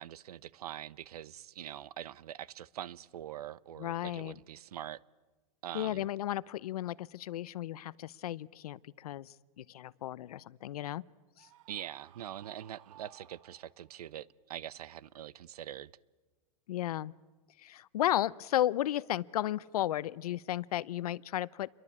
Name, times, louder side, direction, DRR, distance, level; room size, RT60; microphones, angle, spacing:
voice 1, 0.0-5.0 5.6-6.1 11.7-15.9, right 11 dB, 90° right, 22 dB, 0.9 m, -44 dB
voice 2, 3.8-4.4 5.7-11.0 11.4-11.5 16.7-17.1 17.6-21.7, left 13 dB, 80° left, 21 dB, 0.8 m, -34 dB
Screaming, 11.4-14.1, right 14 dB, 60° right, 1.2 m, -58 dB
29.0 x 23.0 x 8.6 m, 1.3 s
supercardioid pair, 160°, 19 cm